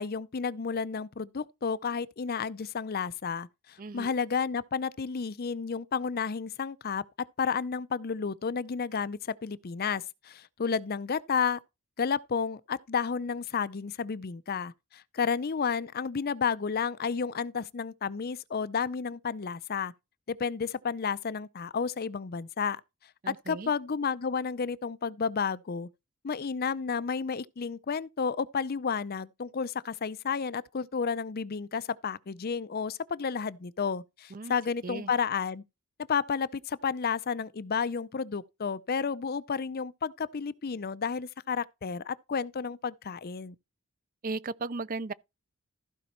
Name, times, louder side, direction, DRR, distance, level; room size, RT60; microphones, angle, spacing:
voice 1, 0.0-7.0 7.4-11.6 12.0-19.9 20.3-22.8 23.3-25.9 26.2-35.6 36.1-43.6, left 6 dB, 45° left, 0.5 m, -31 dB
voice 2, 3.8-4.1 23.2-23.7 34.3-34.5 34.8-35.1 44.2-45.1, right 3 dB, 40° right, 0.5 m, -36 dB
15.0 x 5.1 x 4.4 m
head